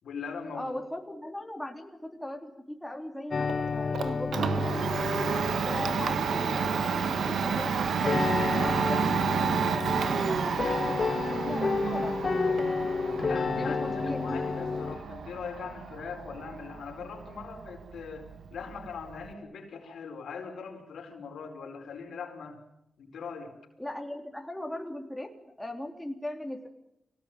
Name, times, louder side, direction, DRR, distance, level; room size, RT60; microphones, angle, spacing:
voice 1, 0.0-0.7 13.3-22.6 23.0-23.5, left 5 dB, 85° left, 3 dB, 4.7 m, -41 dB
voice 2, 0.5-4.8 5.6-12.2 12.5-12.6 13.5-14.4 23.8-26.7, left 1 dB, 5° left, 3 dB, 3.4 m, -39 dB
sound 1, 3.3-15.0, left 4 dB, 50° left, 1.6 m, -31 dB
Domestic sounds home sounds, 3.5-19.3, right 6 dB, 80° right, 1.6 m, -31 dB
24.0 x 17.5 x 9.0 m, 0.87 s
cardioid pair, 65°, 0 cm